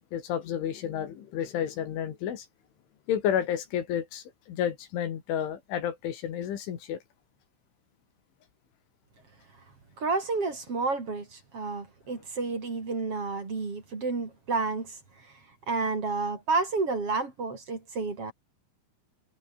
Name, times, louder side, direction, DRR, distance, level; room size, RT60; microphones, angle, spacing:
voice 1, 0.1-2.5 3.1-7.0, left 9 dB, 70° left, 4.8 m, -31 dB
voice 2, 10.0-15.0 15.7-18.3, right 3 dB, 30° right, 4.1 m, -30 dB
omnidirectional pair, 6.0 m